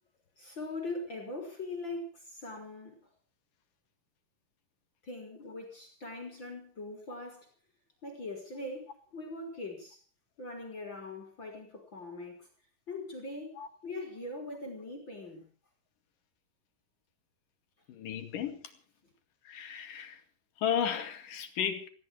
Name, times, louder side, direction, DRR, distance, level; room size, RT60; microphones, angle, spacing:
voice 1, 0.4-3.1 5.0-7.5 8.0-10.0 10.4-12.5 12.9-15.5, left 2 dB, 30° left, 4.0 m, -41 dB
voice 2, 17.9-18.6 19.4-20.2 20.6-21.9, left 9 dB, 65° left, 3.4 m, -34 dB
18.0 x 15.5 x 4.9 m
omnidirectional pair, 4.2 m